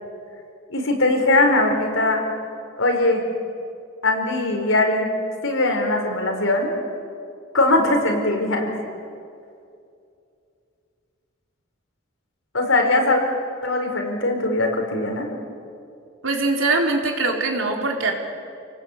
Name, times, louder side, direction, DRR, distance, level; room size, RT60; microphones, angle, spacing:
voice 1, 0.7-2.2 2.8-3.2 4.0-5.1 5.4-6.7 7.5-8.7 12.5-13.2 13.6-15.3, left 2 dB, 80° left, 2 dB, 5.0 m, -20 dB
voice 2, 16.2-18.1, right 3 dB, 80° right, 1 dB, 3.9 m, -22 dB
30.0 x 19.0 x 8.7 m, 2.5 s
head